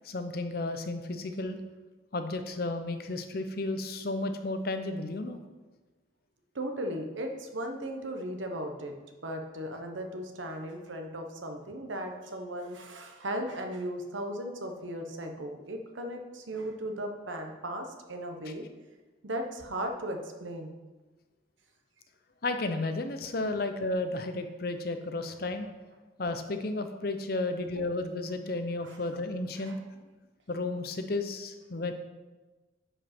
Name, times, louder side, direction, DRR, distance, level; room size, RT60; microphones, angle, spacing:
voice 1, 0.0-1.6 2.1-5.4 22.4-25.7 26.2-29.8 30.5-31.9, left 2 dB, 50° left, 7 dB, 0.7 m, -33 dB
voice 2, 6.5-8.9 9.2-18.6 19.2-20.8 28.8-29.0 29.6-29.8, right 1 dB, 80° right, 4 dB, 1.1 m, -37 dB
10.0 x 5.1 x 4.4 m, 1.2 s
head